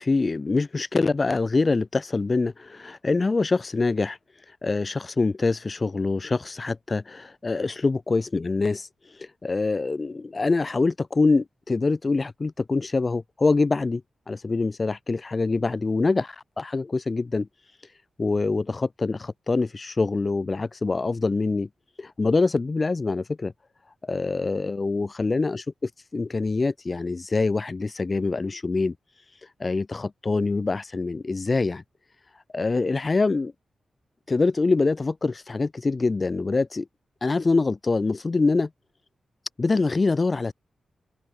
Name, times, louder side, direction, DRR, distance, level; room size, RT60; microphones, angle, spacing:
voice 1, 0.0-4.2 4.6-8.9 9.2-14.0 14.3-17.5 18.2-21.7 22.0-23.5 24.0-25.6 26.1-28.9 29.6-31.8 32.5-33.5 34.3-36.9 37.2-38.7 39.6-40.5, left 3 dB, 35° left, 1.0 m, -24 dB
cardioid pair, 90°, 0 cm